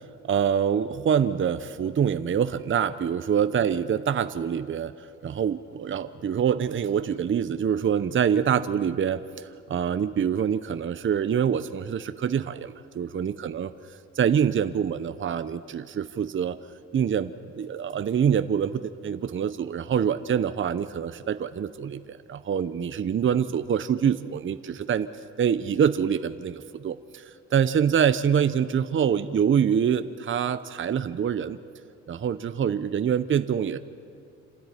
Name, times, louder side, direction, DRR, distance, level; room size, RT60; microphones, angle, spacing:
voice 1, 0.3-4.9 5.2-9.2 9.7-13.7 14.2-16.6 16.9-17.3 17.6-25.1 25.4-27.2 27.5-31.6 32.1-33.8, right 8 dB, 40° right, 11 dB, 0.8 m, -25 dB
27.0 x 13.0 x 9.8 m, 2.4 s
cardioid pair, 90°, 30 cm